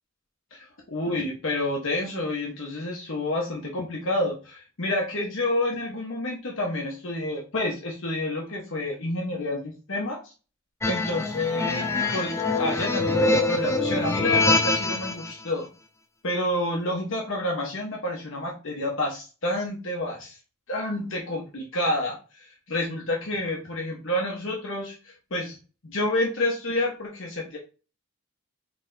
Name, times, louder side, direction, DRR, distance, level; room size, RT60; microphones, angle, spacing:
voice 1, 0.5-10.2 10.8-15.7 16.2-20.4 20.7-25.6 25.8-27.6, left 1 dB, 60° left, -2 dB, 1.0 m, -29 dB
sound 1, 10.8-15.3, left 2 dB, 10° left, 0.4 m, -24 dB
4.1 x 3.3 x 2.6 m, 0.33 s
head